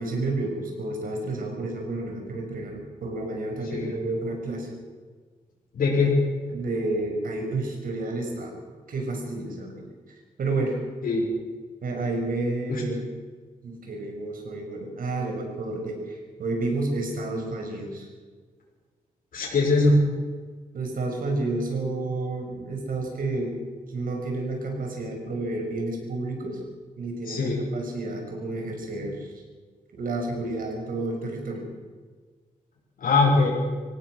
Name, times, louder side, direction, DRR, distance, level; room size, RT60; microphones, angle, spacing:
voice 1, 0.0-4.7 6.5-8.6 8.9-9.9 10.4-10.8 11.8-13.1 13.6-18.1 20.7-23.6 23.9-26.6 27.0-29.3 29.9-31.6, right 2 dB, 70° right, 2 dB, 6.2 m, -30 dB
voice 2, 5.7-6.2 11.0-11.2 12.7-12.8 19.3-20.0 27.3-27.6 33.0-33.5, left 3 dB, 70° left, -4 dB, 6.1 m, -21 dB
25.0 x 17.5 x 6.4 m, 1.5 s
wide cardioid pair, 125°, 15 cm